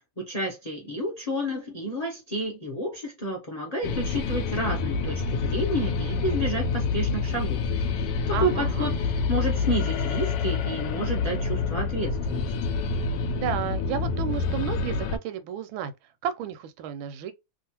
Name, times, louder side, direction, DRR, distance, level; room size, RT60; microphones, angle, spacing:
voice 1, 0.2-7.6 8.3-9.0 9.3-12.5, equal, 50° left, 0.4 m, -30 dB
sound 1, 3.8-15.2, left 4 dB, 75° left, 1.1 m, -27 dB
voice 2, 8.3-8.9 13.3-15.9 16.2-17.3, right 9 dB, 85° right, 1.4 m, -32 dB
3.1 x 2.4 x 2.8 m
omnidirectional pair, 2.2 m